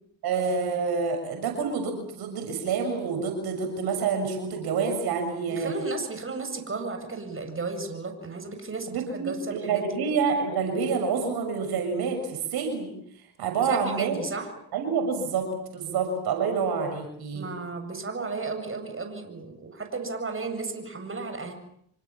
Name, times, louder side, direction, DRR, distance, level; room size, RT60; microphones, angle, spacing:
voice 1, 0.2-5.7 8.9-12.9 13.4-14.2 14.7-17.4, right 5 dB, 70° right, 4 dB, 6.8 m, -28 dB
voice 2, 5.5-10.0 13.6-14.5 17.3-21.5, right 3 dB, 35° right, 6 dB, 7.8 m, -34 dB
26.5 x 25.5 x 7.4 m, 0.70 s
hypercardioid pair, 55°, 39 cm